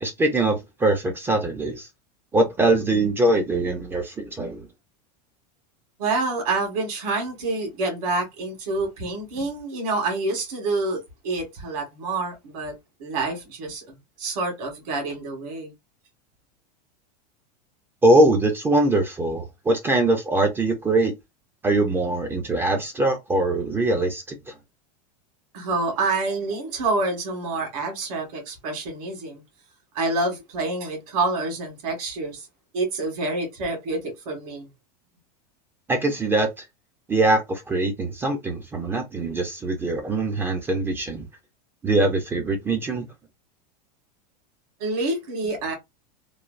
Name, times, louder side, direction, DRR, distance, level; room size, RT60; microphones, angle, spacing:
voice 1, 0.0-1.9 2.3-4.7 18.0-21.1 21.6-24.5 35.9-36.7 37.1-41.3 41.8-43.1, right 2 dB, 10° right, 0.3 m, -22 dB
voice 2, 6.0-15.7 25.5-29.4 29.9-32.5 32.7-34.7 44.8-45.7, right 3 dB, 65° right, 1.5 m, -27 dB
3.2 x 2.1 x 2.4 m
supercardioid pair, 155°, 21 cm